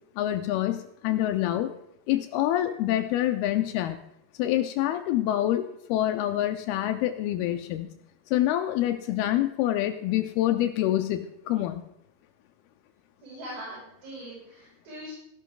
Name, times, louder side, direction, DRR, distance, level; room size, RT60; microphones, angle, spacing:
voice 1, 0.2-1.7 2.1-4.0 4.4-7.9 8.3-11.8, left 13 dB, 90° left, 7 dB, 2.2 m, -26 dB
voice 2, 13.2-15.1, equal, 70° right, -6 dB, 8.3 m, -41 dB
15.5 x 11.5 x 3.8 m, 0.78 s
omnidirectional pair, 5.3 m